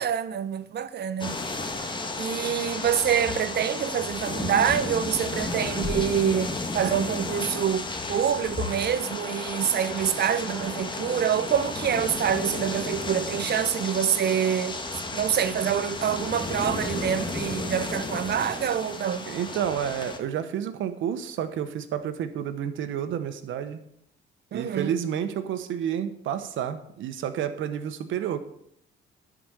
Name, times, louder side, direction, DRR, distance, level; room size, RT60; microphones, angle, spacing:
voice 1, 0.0-1.4 2.2-14.8 15.1-19.3 24.5-24.9, right 8 dB, 55° right, 0.8 m, -26 dB
sound 1, 1.2-20.2, left 3 dB, 25° left, 1.6 m, -33 dB
voice 2, 19.3-23.8 24.5-28.4, right 9 dB, 80° right, 1.1 m, -30 dB
11.0 x 5.1 x 8.2 m
cardioid pair, 90°, 20 cm